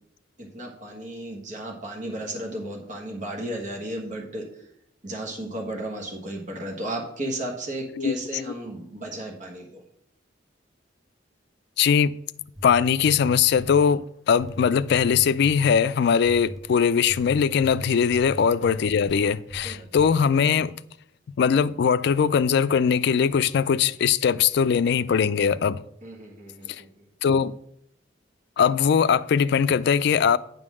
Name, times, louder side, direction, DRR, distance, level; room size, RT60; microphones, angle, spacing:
voice 1, 0.4-4.4 5.0-9.8 18.1-18.2 19.6-19.9 26.0-26.9, right 1 dB, 45° right, 1.3 m, -34 dB
voice 2, 11.8-12.1 12.6-20.7 21.4-25.8 27.2-27.5 28.6-30.4, left 7 dB, 60° left, 0.3 m, -21 dB
sound 1, 12.4-13.8 14.4-15.8 16.3-16.6 17.1-19.2 19.5-20.1, equal, ahead, 0.8 m, -38 dB
9.7 x 3.8 x 6.2 m
head